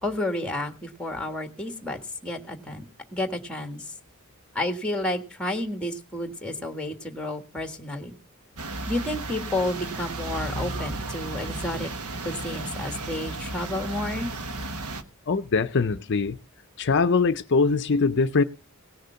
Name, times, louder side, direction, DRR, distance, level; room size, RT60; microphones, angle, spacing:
voice 1, 0.0-2.8 3.1-3.9 4.5-8.2 8.9-11.9 12.2-14.3, left 1 dB, 5° left, 1.6 m, -31 dB
sound 1, 8.6-15.0, right 2 dB, 85° right, 1.2 m, -34 dB
voice 2, 15.3-16.4 16.8-18.4, left 4 dB, 55° left, 0.6 m, -22 dB
18.0 x 6.5 x 5.7 m
head